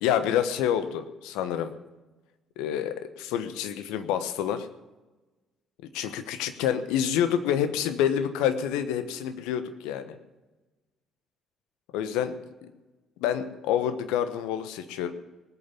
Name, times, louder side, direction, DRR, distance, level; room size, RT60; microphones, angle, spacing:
voice 1, 0.0-1.7 2.6-4.7 5.8-10.2 11.9-12.3 12.6-12.7 13.2-15.1, left 9 dB, 70° left, 10 dB, 1.2 m, -28 dB
19.5 x 8.5 x 7.0 m, 1.1 s
hypercardioid pair, 50°, 0 cm